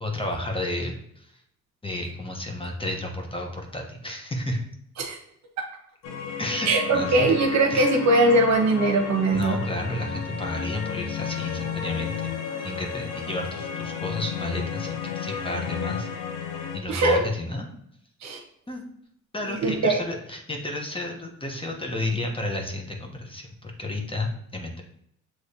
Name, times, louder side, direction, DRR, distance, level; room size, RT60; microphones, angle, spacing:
voice 1, 0.0-1.3 1.8-4.6 6.4-7.3 7.7-7.9 9.3-12.3 12.6-16.1 16.7-17.7 18.7-18.8 19.3-24.8, left 1 dB, 20° left, 2 dB, 0.9 m, -32 dB
sound 1, 6.0-16.8, left 7 dB, 85° left, 0.7 m, -33 dB
voice 2, 6.7-9.6 16.9-17.2 18.2-18.4 19.6-20.0, right 2 dB, 65° right, 3 dB, 1.1 m, -21 dB
6.2 x 3.1 x 2.7 m, 0.72 s
cardioid pair, 90°, 30 cm